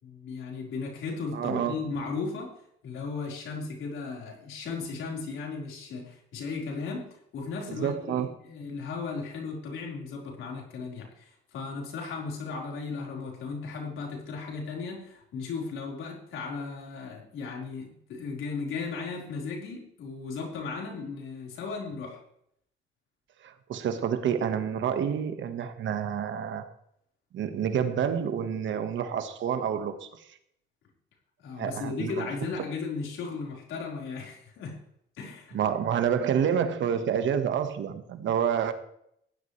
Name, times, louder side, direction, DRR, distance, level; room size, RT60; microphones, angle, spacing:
voice 1, 0.0-2.5 2.8-22.2 31.4-34.8 35.1-35.9, left 4 dB, 85° left, -1 dB, 4.5 m, -36 dB
voice 2, 1.3-1.8 7.7-8.3 23.4-26.7 27.3-30.1 31.6-32.3 35.5-38.7, right 8 dB, 70° right, 8 dB, 1.5 m, -28 dB
15.5 x 11.5 x 3.3 m, 0.73 s
cardioid pair, 90°, 20 cm